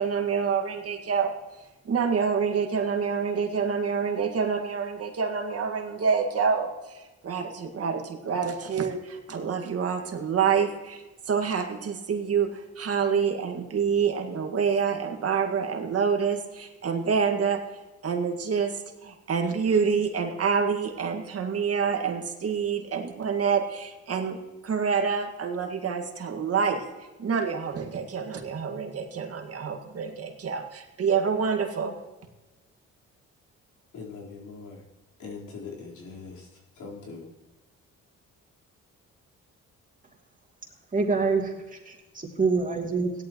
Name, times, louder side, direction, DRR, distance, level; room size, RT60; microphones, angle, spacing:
voice 1, 0.0-1.3 1.9-17.6 18.0-24.4 24.6-31.9, right 6 dB, 50° right, 1.9 m, -27 dB
voice 2, 33.9-34.8 35.2-36.5 36.8-37.3, left 4 dB, 75° left, 4.2 m, -41 dB
voice 3, 40.9-43.1, right 4 dB, 25° right, 2.8 m, -26 dB
17.0 x 12.0 x 3.1 m
cardioid pair, 90°, 30 cm